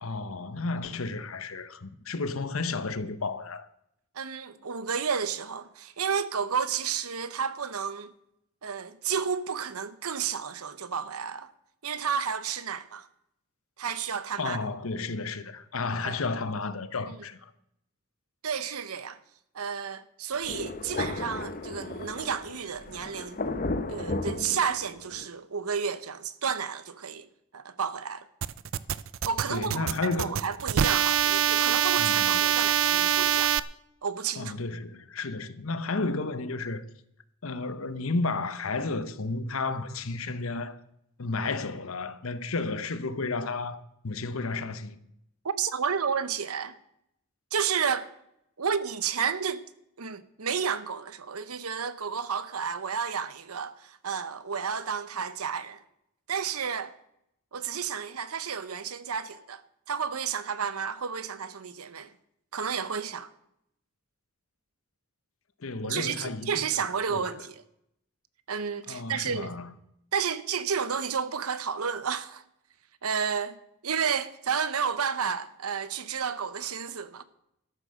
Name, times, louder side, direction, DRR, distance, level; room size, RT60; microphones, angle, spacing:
voice 1, 0.0-3.7 14.4-17.5 29.5-30.4 32.0-32.4 34.4-36.8 37.4-40.8 41.2-45.0 65.6-66.6 67.1-67.3 68.9-69.7, left 3 dB, 70° left, 1.0 m, -32 dB
voice 2, 4.1-8.1 8.6-11.5 11.8-13.1 13.8-14.6 16.0-16.2 17.1-17.2 18.4-19.2 19.5-23.4 23.9-27.3 27.5-28.3 29.2-33.5 34.0-34.5 45.4-46.8 47.5-48.1 48.6-49.6 50.0-55.8 56.3-56.9 57.5-59.6 59.9-62.1 62.5-63.3 65.8-67.6 68.5-69.5 70.1-72.4 73.0-77.2, right 6 dB, 90° right, 0.9 m, -31 dB
Thunder, 20.4-25.2, left 2 dB, 40° left, 0.9 m, -34 dB
sound 1, 28.4-33.6, right 10 dB, 60° right, 0.5 m, -24 dB
13.0 x 10.0 x 6.6 m
head